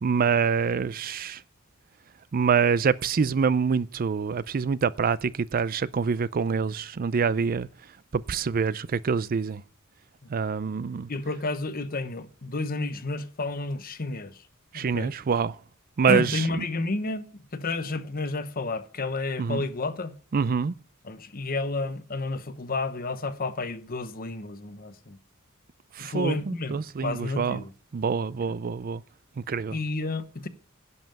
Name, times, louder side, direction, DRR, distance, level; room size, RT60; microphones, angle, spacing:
voice 1, 0.0-1.4 2.3-7.7 8.1-9.6 10.3-11.1 14.7-15.6 16.0-16.4 19.4-19.7 20.3-20.7 26.0-27.6 27.9-29.0 29.5-29.8, right 6 dB, 45° right, 0.4 m, -25 dB
voice 2, 11.1-14.4 14.7-15.1 16.1-17.3 17.5-20.1 21.0-25.2 26.0-27.7 28.4-28.5 29.7-30.5, left 3 dB, 45° left, 0.9 m, -31 dB
11.0 x 5.6 x 8.8 m
head